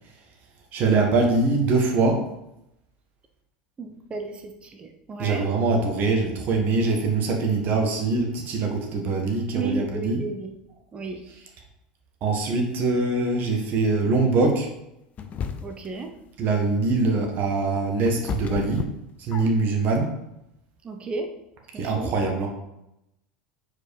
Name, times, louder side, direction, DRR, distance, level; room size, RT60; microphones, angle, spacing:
voice 1, 0.7-2.2 5.2-10.2 12.2-14.7 16.4-18.8 19.2-20.1 21.7-22.5, right 3 dB, 50° right, 2 dB, 1.7 m, -23 dB
voice 2, 3.8-5.5 9.5-10.5 10.9-11.2 15.6-16.1 20.8-21.3 21.7-22.1, right 3 dB, 25° right, 5 dB, 0.8 m, -33 dB
sound 1, 15.2-15.9 17.5-19.8, left 6 dB, 40° left, 0.6 m, -33 dB
4.9 x 4.7 x 4.9 m, 0.86 s
hypercardioid pair, 90°, 4 cm